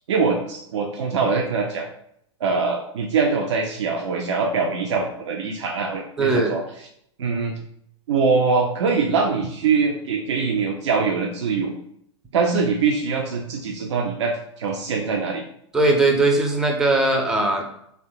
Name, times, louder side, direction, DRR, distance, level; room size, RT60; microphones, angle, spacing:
voice 1, 0.1-1.9 2.4-6.6 7.2-7.5 8.1-11.7 12.3-15.4, right 4 dB, 70° right, 1 dB, 0.4 m, -23 dB
voice 2, 6.2-6.6 15.7-17.6, right 2 dB, 5° right, 1 dB, 0.4 m, -19 dB
2.7 x 2.1 x 2.7 m, 0.71 s
figure-of-eight pair, 105°, 15 cm